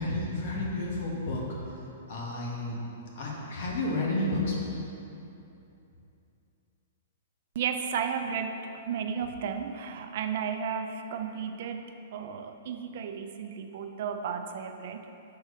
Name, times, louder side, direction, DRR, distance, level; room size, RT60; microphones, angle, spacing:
voice 1, 0.0-1.4 2.1-2.8 3.1-4.5, left 2 dB, 55° left, -3 dB, 1.7 m, -31 dB
voice 2, 7.5-15.0, right 7 dB, 50° right, 6 dB, 0.5 m, -34 dB
6.5 x 4.6 x 5.5 m, 2.8 s
hypercardioid pair, 160°, 0 cm